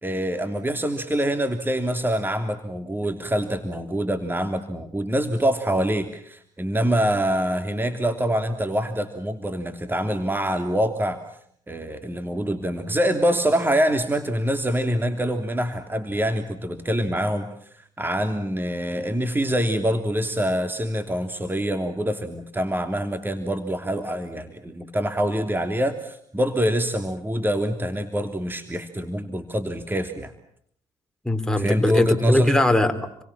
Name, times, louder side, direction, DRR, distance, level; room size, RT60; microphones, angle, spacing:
voice 1, 0.0-11.2 11.7-17.5 17.7-30.3 31.6-32.6, equal, 15° right, 7 dB, 3.1 m, -25 dB
voice 2, 31.2-33.2, left 1 dB, 5° left, 5 dB, 4.2 m, -21 dB
30.0 x 23.5 x 7.4 m, 0.66 s
supercardioid pair, 60°, 12 cm